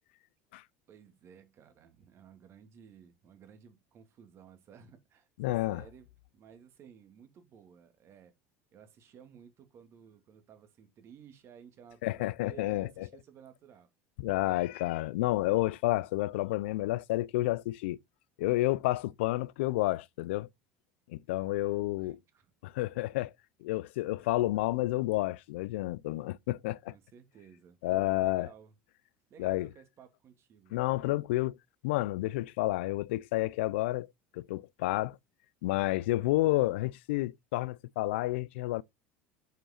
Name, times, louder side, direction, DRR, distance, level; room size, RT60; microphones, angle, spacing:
voice 1, 0.9-6.1 6.3-8.3 8.7-13.9 21.6-22.5 24.0-24.2 26.9-28.7 29.3-31.0, right 8 dB, 45° right, 2.1 m, -55 dB
voice 2, 5.4-5.8 12.0-13.1 14.2-18.0 18.4-20.5 21.1-22.2 22.6-23.3 23.6-26.9 27.8-28.5 29.4-29.7 30.7-31.6 31.8-34.1 34.3-35.2 35.6-38.8, left 18 dB, 80° left, 0.4 m, -30 dB
7.7 x 5.3 x 4.3 m
supercardioid pair, 100°, 6 cm